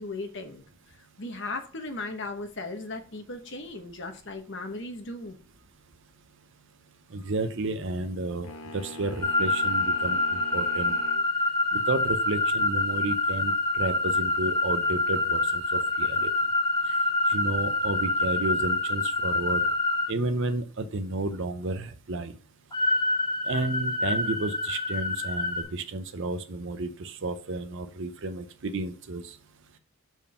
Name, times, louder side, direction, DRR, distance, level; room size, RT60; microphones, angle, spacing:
voice 1, 0.0-5.4, left 2 dB, 55° left, 5 dB, 1.2 m, -37 dB
voice 2, 7.1-8.5 8.7-11.0 11.7-16.3 17.3-19.7 20.1-22.3 23.5-29.4, right 2 dB, 55° right, 8 dB, 0.7 m, -32 dB
sound 1, 8.4-11.3, left 1 dB, 85° left, 1.0 m, -43 dB
sound 2, 9.2-20.1 22.7-25.6, left 2 dB, 20° left, 2.2 m, -26 dB
5.5 x 4.6 x 5.4 m, 0.38 s
head